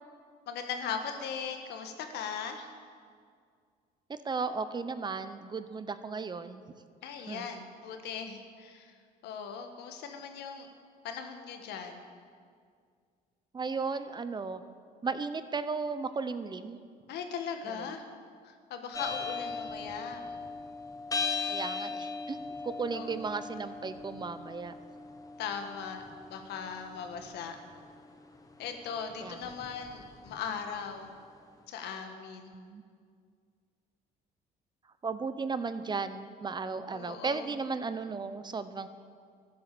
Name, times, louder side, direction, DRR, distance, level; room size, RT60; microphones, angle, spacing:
voice 1, 0.5-2.7 7.0-9.0 9.2-10.7 11.0-12.0 17.1-18.0 18.4-20.2 22.9-23.3 25.4-26.0 26.3-27.6 28.6-31.1 31.7-32.5 36.9-37.5, left 6 dB, 80° left, 6 dB, 1.6 m, -39 dB
voice 2, 4.1-6.6 7.3-7.5 13.5-14.6 15.0-16.8 17.7-17.9 21.5-22.4 22.6-24.7 29.2-29.5 32.5-32.8 35.0-38.9, right 4 dB, 25° right, 12 dB, 0.7 m, -35 dB
sound 1, 18.9-31.1, left 4 dB, 20° left, 1.3 m, -39 dB
13.5 x 11.0 x 6.8 m, 2.1 s
cardioid pair, 110°, 17 cm